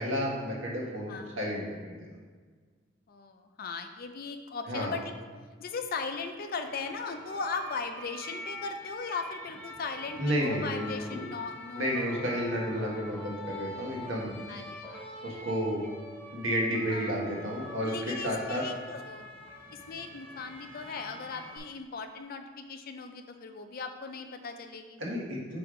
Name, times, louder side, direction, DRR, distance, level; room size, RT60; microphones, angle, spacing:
voice 1, 0.0-2.1 4.7-4.9 10.2-11.2 11.7-14.3 15.2-15.8 16.3-18.6 25.0-25.6, equal, 70° right, -3 dB, 1.5 m, -31 dB
voice 2, 1.1-1.4 3.1-5.1 5.6-12.0 14.5-15.1 16.9-17.2 17.8-19.3 19.7-25.0, left 4 dB, 45° left, 6 dB, 0.4 m, -38 dB
sound 1, 6.5-21.6, left 1 dB, 10° left, 0.9 m, -45 dB
6.2 x 3.4 x 4.9 m, 1.5 s
head